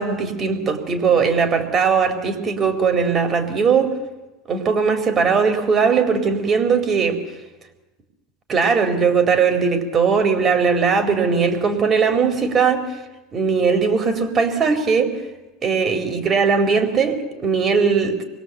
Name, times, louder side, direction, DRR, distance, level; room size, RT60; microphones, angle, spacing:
voice 1, 0.0-4.0 4.5-7.2 8.5-12.9 13.3-15.2 15.6-18.2, right 5 dB, 30° right, 7 dB, 4.2 m, -19 dB
26.0 x 23.0 x 8.1 m, 1.1 s
supercardioid pair, 115°, 0 cm